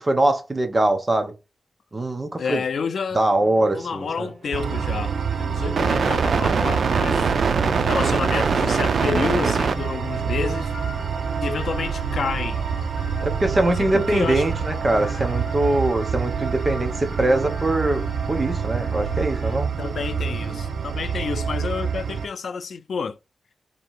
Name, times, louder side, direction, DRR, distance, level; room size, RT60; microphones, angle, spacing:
voice 1, 0.0-1.3 1.9-2.6 3.1-4.3 7.5-7.9 13.2-18.0 18.3-19.7, right 2 dB, 25° right, 0.7 m, -22 dB
voice 2, 2.4-3.2 3.7-7.3 7.8-10.7 11.4-12.6 13.8-14.4 19.8-23.2, left 5 dB, 70° left, 0.4 m, -29 dB
sound 1, 3.4-10.3, equal, 50° right, 1.6 m, -40 dB
sound 2, 4.5-22.3, right 6 dB, 70° right, 0.4 m, -25 dB
Vehicle horn car horn honking, 8.9-19.6, left 3 dB, 55° left, 1.0 m, -43 dB
2.9 x 2.7 x 4.4 m
wide cardioid pair, 160°, 0 cm